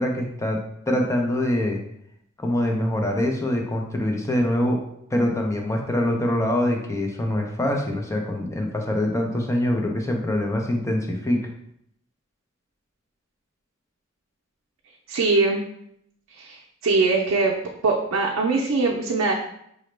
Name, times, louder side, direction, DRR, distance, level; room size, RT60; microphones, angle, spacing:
voice 1, 0.0-1.8 2.4-4.8 5.1-11.4, left 1 dB, 15° left, 2 dB, 0.5 m, -24 dB
voice 2, 15.1-15.6 16.3-17.5 17.8-19.3, right 3 dB, 85° right, -1 dB, 0.4 m, -22 dB
5.0 x 2.1 x 3.1 m, 0.73 s
head